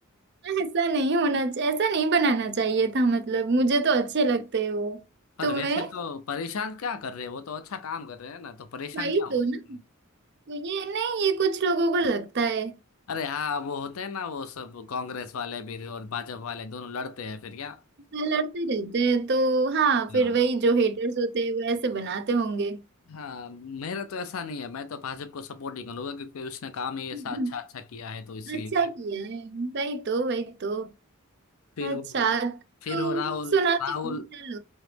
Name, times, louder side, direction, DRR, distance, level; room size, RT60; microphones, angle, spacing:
voice 1, 0.4-5.0 5.4-5.9 8.9-9.8 10.5-12.7 18.1-22.8 27.3-27.5 28.5-30.9 31.8-32.6 32.9-33.2 33.5-33.8 34.0-34.1 34.5-34.6, right 4 dB, 55° right, 0.5 m, -25 dB
voice 2, 5.4-9.3 13.1-17.8 20.1-20.4 23.1-28.9 31.8-32.4 32.8-34.3, left 5 dB, 80° left, 0.5 m, -35 dB
3.8 x 3.1 x 3.3 m
head